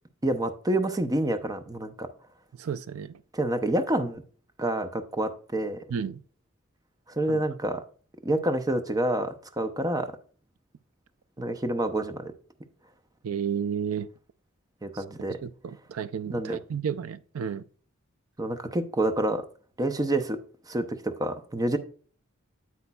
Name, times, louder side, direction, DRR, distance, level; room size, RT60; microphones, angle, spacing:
voice 1, 0.2-2.1 3.3-4.2 4.6-5.8 7.2-7.8 8.2-10.1 11.4-12.3 14.8-15.4 16.3-16.6 18.4-19.4 19.8-20.4 20.7-21.8, right 1 dB, 20° right, 0.6 m, -28 dB
voice 2, 2.6-3.2 5.9-6.2 7.3-7.4 13.2-14.1 14.9-17.6, right 7 dB, 90° right, 0.4 m, -32 dB
8.5 x 8.0 x 2.3 m
head